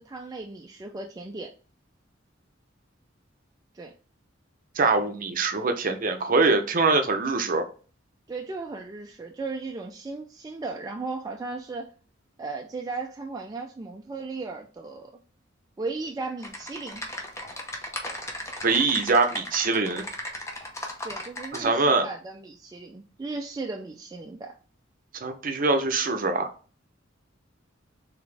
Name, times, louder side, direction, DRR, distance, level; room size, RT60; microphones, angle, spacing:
voice 1, 0.0-1.5 3.7-3.9 8.3-11.9 12.4-15.1 15.8-17.0 21.0-24.6, right 3 dB, 20° right, 0.3 m, -36 dB
voice 2, 4.8-7.6 18.6-20.0 21.5-22.1 25.2-26.5, right 3 dB, 45° right, 0.6 m, -23 dB
Typing, 16.4-21.6, left 1 dB, 15° left, 0.7 m, -36 dB
3.9 x 3.5 x 3.3 m
head